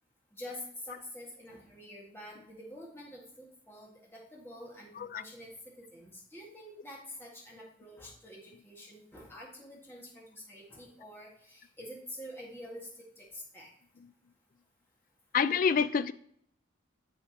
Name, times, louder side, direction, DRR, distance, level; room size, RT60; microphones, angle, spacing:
voice 1, 0.3-13.7, left 1 dB, 10° left, 1.8 m, -47 dB
voice 2, 15.3-16.1, left 6 dB, 45° left, 0.3 m, -27 dB
7.2 x 6.5 x 2.9 m
head